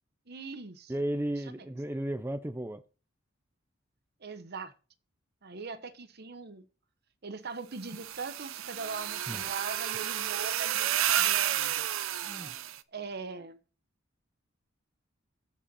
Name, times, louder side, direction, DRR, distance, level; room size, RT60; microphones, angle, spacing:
voice 1, 0.3-0.9 1.6-1.7 4.2-4.7 5.4-6.6 7.2-11.9 12.9-13.6, right 4 dB, 55° right, 1.0 m, -41 dB
voice 2, 0.9-2.8 9.3-9.6 12.2-12.5, right 1 dB, 10° right, 0.5 m, -34 dB
sound 1, 7.8-12.8, right 11 dB, 85° right, 0.6 m, -31 dB
13.5 x 5.3 x 4.2 m
head